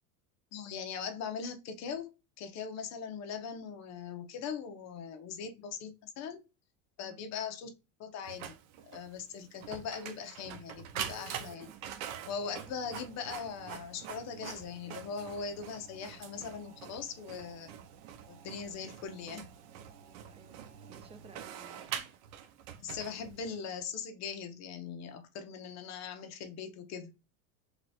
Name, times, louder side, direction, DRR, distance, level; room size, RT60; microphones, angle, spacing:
voice 1, 0.5-2.1 2.4-6.4 7.0-7.7 8.0-8.5 8.8-11.7 12.3-17.7 18.3-19.5 22.8-27.1, left 6 dB, 40° left, 0.8 m, -40 dB
Printer, 8.2-23.6, right 9 dB, 80° right, 0.8 m, -45 dB
voice 2, 20.0-22.1, right 5 dB, 15° right, 0.5 m, -56 dB
3.3 x 3.0 x 4.0 m
supercardioid pair, 135°, 41 cm